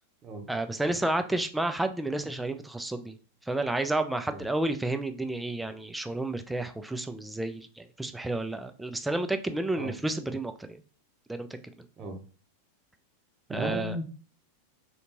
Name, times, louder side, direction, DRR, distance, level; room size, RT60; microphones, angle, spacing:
voice 1, 0.5-3.1 3.5-10.8 11.3-11.5 13.5-14.0, right 2 dB, 5° right, 9 dB, 0.3 m, -31 dB
voice 2, 13.5-14.0, right 1 dB, 25° right, 3 dB, 0.8 m, -35 dB
3.3 x 2.8 x 2.9 m, 0.38 s
figure-of-eight pair, 90°, 0 cm